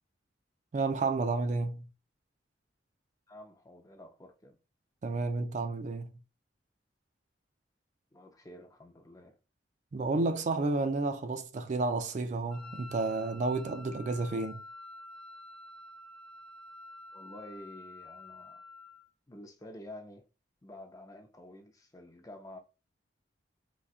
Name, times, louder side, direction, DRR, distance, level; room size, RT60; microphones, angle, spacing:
voice 1, 0.7-1.9 5.0-6.1 9.9-14.6, right 3 dB, 40° right, 0.3 m, -31 dB
voice 2, 3.3-4.6 8.1-9.4 17.1-18.6 19.3-20.3 20.6-22.6, left 1 dB, 20° left, 0.5 m, -49 dB
Wind instrument woodwind instrument, 12.5-19.1, left 2 dB, ahead, 0.9 m, -49 dB
4.0 x 2.3 x 2.4 m
head